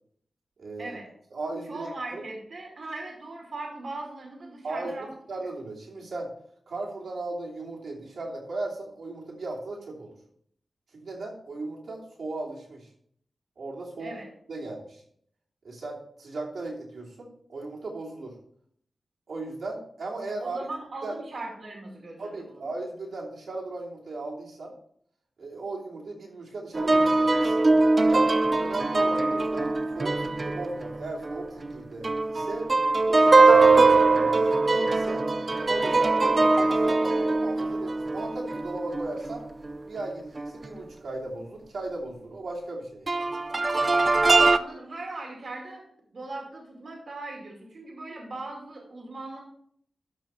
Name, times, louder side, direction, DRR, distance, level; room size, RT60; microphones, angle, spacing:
voice 1, 0.6-1.0 1.3-2.2 4.6-6.3 6.7-10.2 10.9-12.9 13.6-14.1 14.5-15.0 15.6-18.4 19.3-20.6 21.0-21.2 22.2-24.7 25.4-27.6 28.1-32.7 33.1-35.3 35.6-39.4 39.9-43.2, right 2 dB, 80° right, -5 dB, 2.9 m, -37 dB
voice 2, 1.7-5.1 14.0-14.3 20.4-22.7 44.2-45.8 46.1-49.4, right 2 dB, 55° right, -1 dB, 2.4 m, -39 dB
sound 1, 26.7-31.8 32.0-39.8 40.4-40.5 43.1-44.6, right 3 dB, 35° right, 0.5 m, -22 dB
13.0 x 5.2 x 4.3 m, 0.65 s
wide cardioid pair, 145°, 0 cm